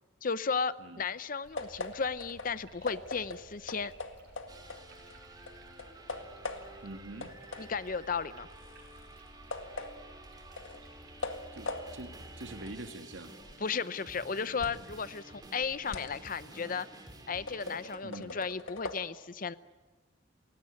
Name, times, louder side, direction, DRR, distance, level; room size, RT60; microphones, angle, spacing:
voice 1, 0.2-3.9 7.6-8.5 13.6-16.9 17.3-19.5, left 5 dB, 45° left, 15 dB, 0.7 m, -34 dB
sound 1, 1.4-12.4, right 1 dB, 60° right, 5.1 m, -58 dB
sound 2, 1.6-5.2 5.5-6.9 7.2-14.9 15.3-19.0, left 2 dB, 90° left, 1.9 m, -43 dB
sound 3, 4.5-18.0, right 2 dB, 20° right, 2.9 m, -51 dB
voice 2, 6.8-7.3 11.5-13.3 18.0-18.4, right 2 dB, 80° right, 7 dB, 2.0 m, -45 dB
28.5 x 17.0 x 9.9 m, 1.3 s
head